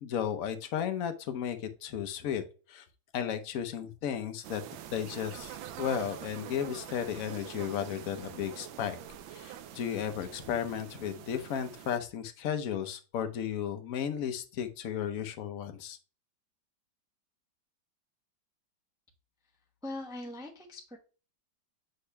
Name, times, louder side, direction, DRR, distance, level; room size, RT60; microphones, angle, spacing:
voice 1, 0.0-2.8 3.1-4.6 4.9-9.0 9.3-16.0, left 9 dB, 60° left, 8 dB, 1.0 m, -34 dB
sound 1, 4.4-12.0, right 10 dB, 80° right, 1.4 m, -45 dB
voice 2, 19.8-21.0, left 1 dB, 5° right, 0 dB, 0.5 m, -41 dB
8.4 x 5.3 x 2.2 m, 0.36 s
omnidirectional pair, 2.1 m